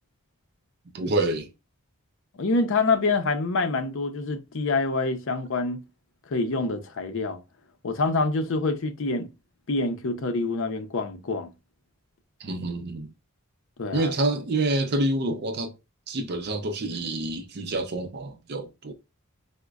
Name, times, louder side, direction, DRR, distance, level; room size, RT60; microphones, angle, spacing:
voice 1, 0.9-1.5 12.4-13.1 13.9-15.7 16.1-18.9, right 2 dB, 50° right, 0.5 m, -27 dB
voice 2, 2.4-5.8 6.3-7.4 7.8-9.3 9.7-11.5 13.8-14.1, left 3 dB, 60° left, 0.6 m, -26 dB
4.9 x 2.1 x 2.3 m
head